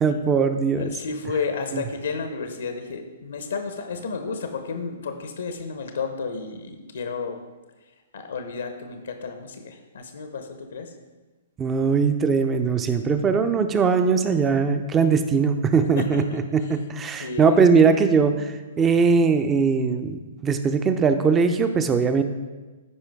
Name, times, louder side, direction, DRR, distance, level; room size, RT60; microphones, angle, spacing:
voice 1, 0.0-0.9 1.7-1.8 11.6-22.2, right 5 dB, 20° right, 9 dB, 0.6 m, -20 dB
voice 2, 0.7-7.4 8.1-10.9 16.0-16.7 17.2-17.6, left 5 dB, 70° left, 6 dB, 0.9 m, -32 dB
14.0 x 5.1 x 3.6 m, 1.3 s
figure-of-eight pair, 115°, 0 cm